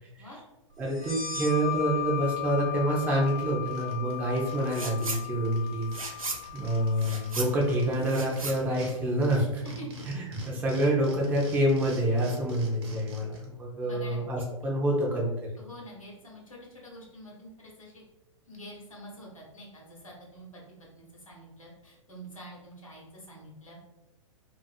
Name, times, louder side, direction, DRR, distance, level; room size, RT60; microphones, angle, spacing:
voice 1, 0.8-6.2 6.5-9.6 10.2-15.3, right 1 dB, 10° right, -3 dB, 0.4 m, -27 dB
sound 1, 0.9-8.2, left 11 dB, 75° right, 0.9 m, -37 dB
sound 2, 2.6-2.7 3.0-4.9 5.1-5.2 5.4-8.9 9.2-13.4, right 2 dB, 50° right, 0.7 m, -46 dB
sound 3, 4.7-5.2 5.6-9.5, right 3 dB, 90° right, 0.4 m, -37 dB
voice 2, 13.8-14.2 15.6-18.0 18.5-23.8, equal, 80° left, -3 dB, 0.9 m, -47 dB
2.5 x 2.5 x 2.3 m, 0.99 s
figure-of-eight pair, 105°, 17 cm